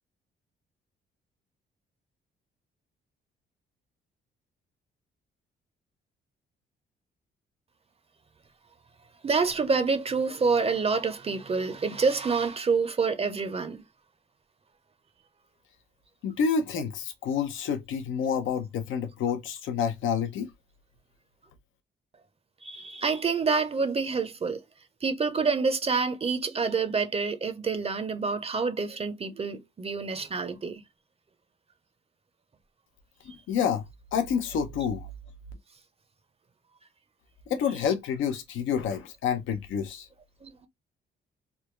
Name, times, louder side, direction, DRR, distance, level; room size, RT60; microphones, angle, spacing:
voice 1, 9.2-13.8 22.6-24.6 25.0-30.8 40.4-40.5, right 4 dB, 30° right, 0.6 m, -27 dB
voice 2, 16.2-20.5 33.5-33.9 34.1-35.1 37.5-40.1, left 7 dB, 80° left, 0.7 m, -28 dB
3.3 x 2.2 x 3.1 m
cardioid pair, 90°, 20 cm